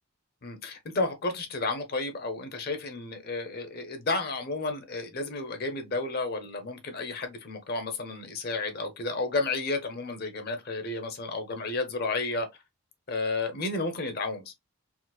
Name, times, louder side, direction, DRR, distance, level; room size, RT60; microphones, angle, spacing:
voice 1, 0.4-12.5 13.1-14.4, left 3 dB, 45° left, 0.7 m, -32 dB
4.4 x 2.0 x 2.3 m
head